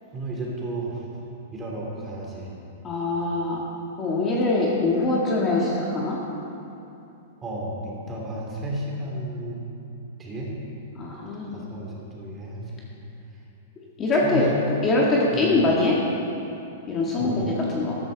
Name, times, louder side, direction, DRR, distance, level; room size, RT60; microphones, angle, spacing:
voice 1, 0.1-1.0 1.5-2.5 7.4-9.6 10.2-10.5 11.5-12.8 14.2-14.5 15.3-15.5 17.2-17.4, right 1 dB, 15° right, -3 dB, 2.7 m, -32 dB
voice 2, 2.8-3.6 4.0-6.2 10.9-11.6 14.0-14.5 14.8-16.0 16.9-18.0, left 2 dB, 20° left, -4 dB, 1.7 m, -23 dB
13.5 x 13.0 x 4.0 m, 2.8 s
hypercardioid pair, 155°, 0 cm